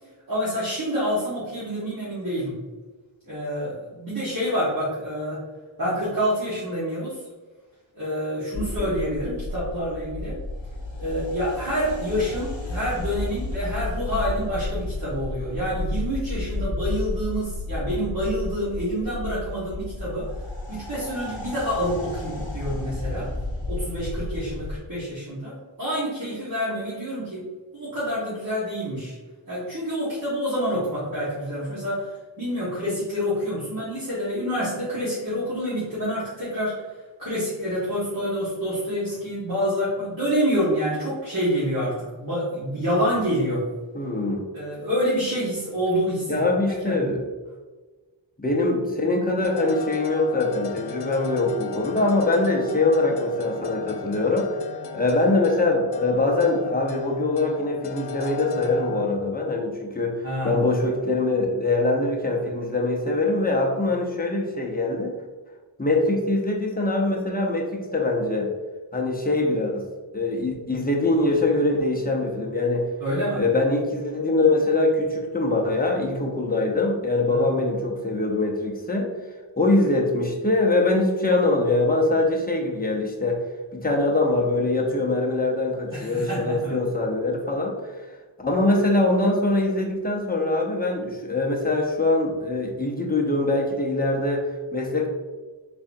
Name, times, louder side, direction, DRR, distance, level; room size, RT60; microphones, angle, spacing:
voice 1, 0.3-2.6 3.2-5.4 5.8-7.2 7.9-10.4 11.0-20.3 20.7-23.3 23.7-27.5 27.7-29.2 29.5-32.1 32.4-36.8 37.2-43.7 44.5-47.1 60.2-60.6 73.0-73.4 77.3-77.5 85.9-86.8, equal, 45° right, -9 dB, 1.3 m, -27 dB
sound 1, 8.5-24.8, left 2 dB, 80° left, 1.0 m, -32 dB
voice 2, 8.6-8.9 43.9-44.5 46.3-47.3 48.4-54.6 54.9-65.1 65.8-68.5 68.9-69.9 70.1-72.9 73.4-79.1 79.6-83.4 83.7-88.1 88.4-95.1, left 2 dB, 20° left, 0 dB, 0.7 m, -23 dB
sound 2, 49.4-59.1, left 7 dB, 60° left, 0.5 m, -36 dB
3.8 x 3.3 x 2.6 m, 1.3 s
wide cardioid pair, 40°, 47 cm